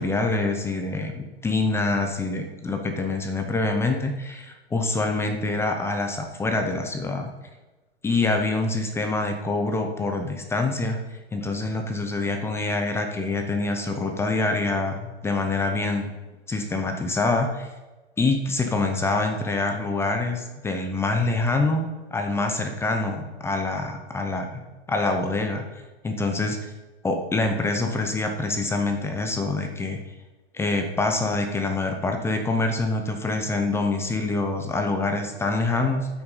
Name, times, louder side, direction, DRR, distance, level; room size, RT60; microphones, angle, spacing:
voice 1, 0.0-7.3 8.0-16.1 16.5-17.7 18.2-21.8 22.1-24.6 24.9-25.6 26.0-26.7 27.0-30.0 30.5-36.1, left 3 dB, 5° left, 4 dB, 0.6 m, -25 dB
10.5 x 6.0 x 5.4 m, 1.1 s
hypercardioid pair, 135°, 33 cm